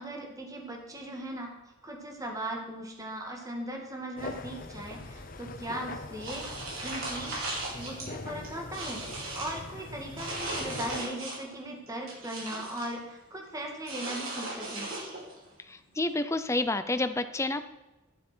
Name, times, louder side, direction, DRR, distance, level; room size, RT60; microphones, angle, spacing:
voice 1, 0.0-1.5 1.8-9.0 9.3-14.9, right 1 dB, 15° right, 1 dB, 1.9 m, -38 dB
sound 1, 4.2-11.0, left 2 dB, 45° left, 0.9 m, -42 dB
sound 2, 6.2-8.1 8.4-9.6 10.2-11.5 11.9-12.9 13.8-15.4, right 2 dB, 75° right, 5.1 m, -37 dB
voice 2, 15.7-17.6, left 2 dB, 15° left, 11 dB, 0.6 m, -29 dB
11.5 x 11.5 x 4.4 m, 1.1 s
head